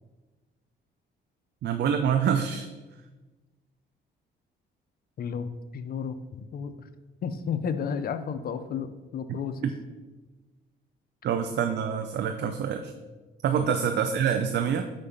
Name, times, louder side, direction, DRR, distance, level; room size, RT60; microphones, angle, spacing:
voice 1, 1.6-2.7 9.3-9.7 11.2-12.9 13.4-14.8, right 8 dB, 60° right, 6 dB, 0.5 m, -26 dB
voice 2, 5.2-6.9 7.2-9.7 12.4-12.5 13.6-13.8, left 6 dB, 50° left, 11 dB, 0.5 m, -33 dB
5.2 x 4.7 x 5.5 m, 1.2 s
cardioid pair, 90°, 20 cm